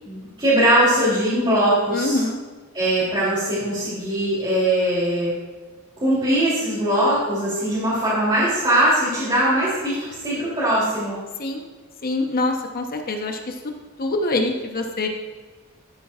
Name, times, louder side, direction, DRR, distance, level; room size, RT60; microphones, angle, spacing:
voice 1, 0.0-2.2 2.7-5.3 6.0-11.1, right 1 dB, 25° right, -10 dB, 3.0 m, -21 dB
voice 2, 1.9-2.4 11.4-11.7 12.0-13.6 14.0-15.1, left 2 dB, 45° left, 4 dB, 0.9 m, -24 dB
12.5 x 8.4 x 2.4 m, 1.4 s
head